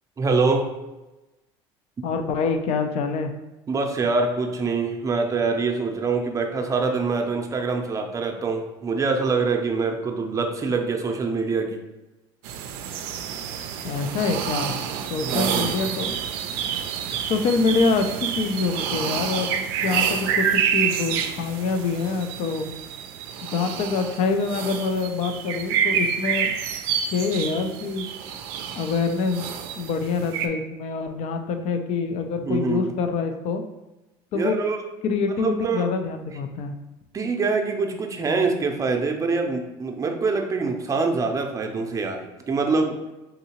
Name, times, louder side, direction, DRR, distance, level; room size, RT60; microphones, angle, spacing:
voice 1, 0.2-0.7 3.7-11.8 15.2-15.7 32.4-32.9 34.3-34.8 35.4-35.9 37.1-43.0, right 4 dB, 25° right, 3 dB, 0.6 m, -24 dB
voice 2, 2.0-3.3 13.8-14.8 15.1-16.2 17.3-22.7 23.4-26.5 27.1-28.1 28.7-29.5 29.8-33.6 34.3-34.6 35.0-36.7, left 4 dB, 60° left, 7 dB, 0.5 m, -25 dB
sound 1, 12.4-30.5, right 8 dB, 80° right, 0.4 m, -28 dB
3.8 x 2.7 x 2.9 m, 1.0 s
supercardioid pair, 85°, 12 cm